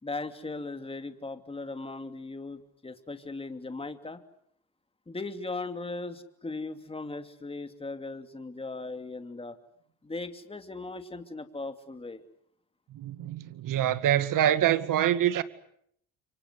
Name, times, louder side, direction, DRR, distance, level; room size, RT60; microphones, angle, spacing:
voice 1, 0.0-4.2 5.1-9.6 10.0-12.2, left 3 dB, 15° left, 2.8 m, -38 dB
voice 2, 12.9-15.4, right 11 dB, 60° right, 2.2 m, -25 dB
28.0 x 24.5 x 8.1 m
supercardioid pair, 90°, 36 cm